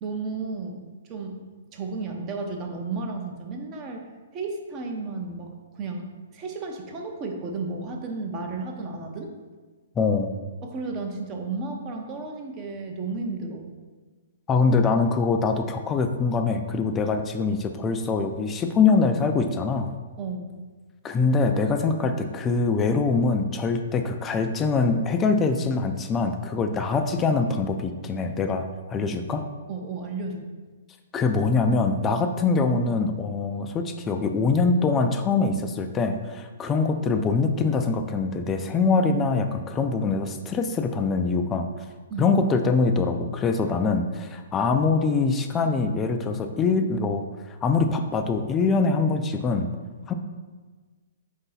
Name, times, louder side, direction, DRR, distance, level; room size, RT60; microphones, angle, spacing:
voice 1, 0.0-0.8 1.1-1.4 1.7-4.1 4.3-9.3 10.6-13.7 20.2-20.6 29.7-30.4 42.1-42.3, right 3 dB, 30° right, 2 dB, 0.6 m, -33 dB
voice 2, 10.0-10.4 14.5-19.9 21.0-29.4 31.1-41.7 42.2-47.2 47.6-49.7 50.1-50.2, left 4 dB, 20° left, 6 dB, 0.3 m, -23 dB
4.8 x 2.7 x 4.0 m, 1.4 s
hypercardioid pair, 135°, 0 cm